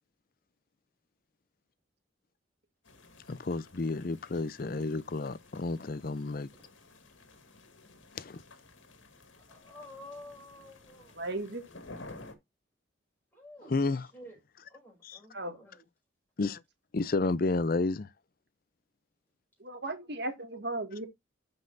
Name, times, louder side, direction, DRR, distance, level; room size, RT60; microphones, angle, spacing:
sound 1, 2.8-12.4, left 2 dB, 80° left, 2.0 m, -53 dB
voice 1, 3.3-6.5 8.1-8.4 13.7-14.0 16.4-16.6 16.9-18.1, left 3 dB, 50° left, 0.5 m, -31 dB
voice 2, 9.4-11.3 13.3-14.4 14.7-15.8, left 1 dB, 10° left, 5.5 m, -51 dB
voice 3, 11.2-11.6 15.3-15.5 19.6-21.1, right 2 dB, 55° right, 2.0 m, -36 dB
13.5 x 5.4 x 2.6 m
head